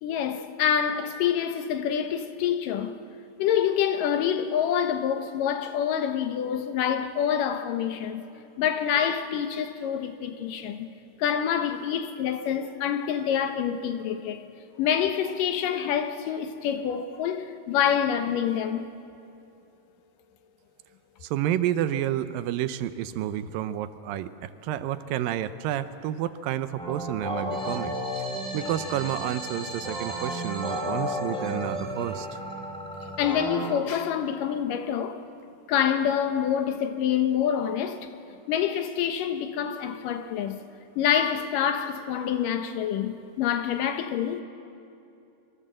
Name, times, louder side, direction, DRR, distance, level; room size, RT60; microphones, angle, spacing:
voice 1, 0.0-3.0 3.4-8.2 8.6-10.9 11.2-14.4 14.8-18.9 33.2-35.2 35.7-38.1 38.5-40.6 41.0-44.4, left 9 dB, 75° left, 2.6 m, -26 dB
voice 2, 21.2-28.0 28.5-32.4, right 11 dB, 80° right, 2.5 m, -30 dB
sound 1, 26.8-33.8, equal, ahead, 3.0 m, -33 dB
26.0 x 23.0 x 7.7 m
omnidirectional pair, 4.0 m